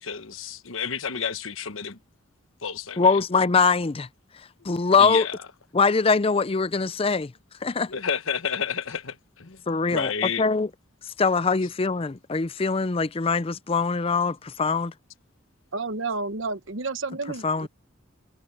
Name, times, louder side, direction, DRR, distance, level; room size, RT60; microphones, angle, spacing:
voice 1, 0.0-2.0 2.6-3.2 4.6-4.7 5.0-5.4 7.9-9.6 9.9-10.4, left 7 dB, 75° left, 1.3 m, -30 dB
voice 2, 3.0-4.1 4.6-5.3 5.7-7.3 7.6-7.9 9.7-10.1 10.4-10.7 11.2-14.9 17.4-17.7, left 4 dB, 25° left, 0.5 m, -22 dB
voice 3, 15.7-17.7, right 3 dB, 65° right, 1.2 m, -31 dB
head